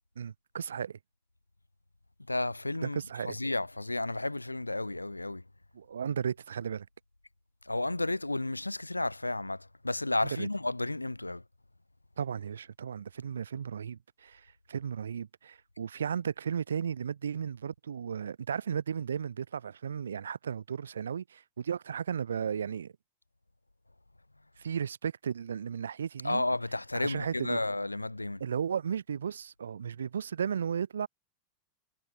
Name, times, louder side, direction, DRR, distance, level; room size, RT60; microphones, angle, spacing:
voice 1, 0.2-1.0 2.8-3.4 5.7-6.9 10.2-10.5 12.2-14.4 14.7-22.9 24.6-26.4 26.9-27.6 28.4-31.1, right 7 dB, 70° right, 4.8 m, -35 dB
voice 2, 2.3-5.4 7.7-11.4 26.2-28.4, left 2 dB, 85° left, 1.7 m, -32 dB
figure-of-eight pair, 90°, 0 cm